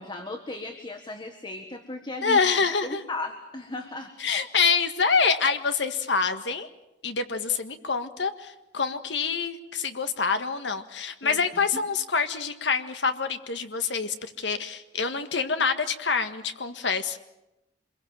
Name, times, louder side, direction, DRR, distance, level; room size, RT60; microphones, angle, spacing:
voice 1, 0.0-2.4 2.8-4.4 11.2-11.4, left 2 dB, 25° left, 7 dB, 1.6 m, -36 dB
voice 2, 2.2-3.0 4.2-6.7 7.0-17.2, left 5 dB, 75° left, 9 dB, 1.7 m, -26 dB
26.0 x 22.0 x 7.5 m, 0.93 s
head